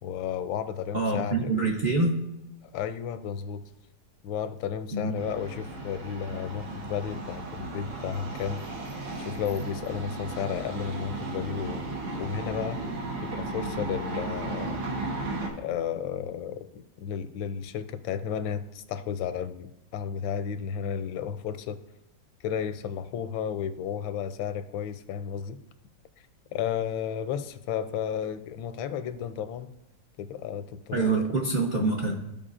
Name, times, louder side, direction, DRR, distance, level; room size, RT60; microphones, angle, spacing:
voice 1, 0.0-1.5 2.6-3.6 4.2-8.6 9.2-12.8 13.2-14.8 15.6-21.8 22.4-25.6 26.5-29.7 30.2-31.3, left 8 dB, 85° left, 12 dB, 1.4 m, -33 dB
voice 2, 0.9-2.1 4.9-5.1 30.9-32.3, right 3 dB, 45° right, -2 dB, 0.7 m, -26 dB
sound 1, 5.2-15.5, right 2 dB, 85° right, 1.9 m, -35 dB
14.5 x 5.2 x 2.5 m, 0.89 s
omnidirectional pair, 2.1 m